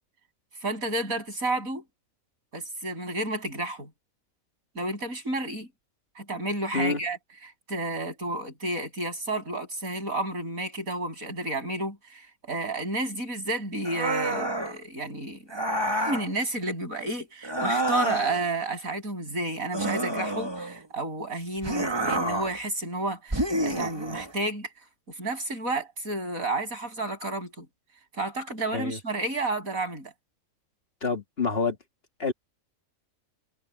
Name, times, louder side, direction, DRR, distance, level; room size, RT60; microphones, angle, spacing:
voice 1, 0.6-1.8 2.5-3.9 4.8-5.7 6.2-7.2 7.7-15.4 16.0-24.7 25.2-27.7 28.1-30.1, right 2 dB, 85° right, 8.7 m, -31 dB
sound 1, 13.8-14.8 15.5-16.3 17.4-18.5 19.7-20.9 21.6-22.6 23.3-24.3, right 1 dB, 20° right, 1.8 m, -28 dB
voice 2, 31.0-31.8 32.2-32.3, left 4 dB, 45° left, 2.4 m, -27 dB
omnidirectional pair, 1.4 m